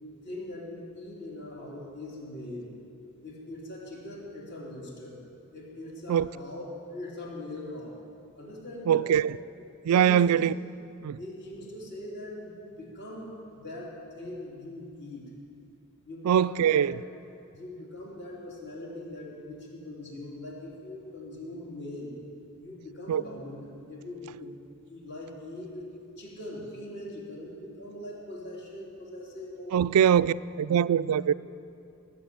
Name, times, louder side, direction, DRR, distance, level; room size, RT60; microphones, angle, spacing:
voice 1, 0.2-2.7 3.2-5.2 5.5-8.0 8.3-9.1 9.9-10.4 11.2-15.3 16.0-16.9 17.5-22.1 22.6-25.9 26.2-30.1, left 1 dB, 50° left, -4 dB, 3.3 m, -41 dB
voice 2, 8.9-9.4 9.8-10.5 11.0-11.2 16.2-17.0 23.1-23.2 29.7-31.3, right 9 dB, 85° right, 17 dB, 0.3 m, -22 dB
19.0 x 7.5 x 7.7 m, 2.5 s
head